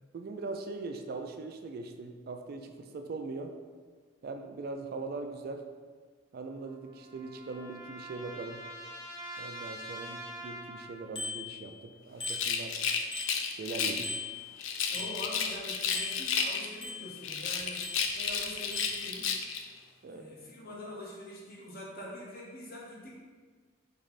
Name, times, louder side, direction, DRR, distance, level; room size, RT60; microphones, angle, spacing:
voice 1, 0.1-3.6 4.2-5.7 6.3-8.6 9.4-12.8 13.5-14.2 14.9-15.1 20.0-20.5, right 3 dB, 50° right, 5 dB, 0.3 m, -41 dB
sound 1, 6.5-11.2, right 1 dB, 15° right, 0.8 m, -45 dB
Bicycle bell, 11.2-11.9 12.2-13.7 14.0-15.6 15.9-17.4 17.8-18.4 18.7-19.1, left 3 dB, 25° left, 0.5 m, -41 dB
Rattle, 12.2-14.1 14.6-16.9 17.2-19.7, left 6 dB, 85° left, 0.4 m, -32 dB
voice 2, 14.9-17.9 18.1-19.4 20.1-23.1, equal, 50° left, -3 dB, 1.0 m, -44 dB
3.6 x 3.2 x 4.0 m, 1.5 s
head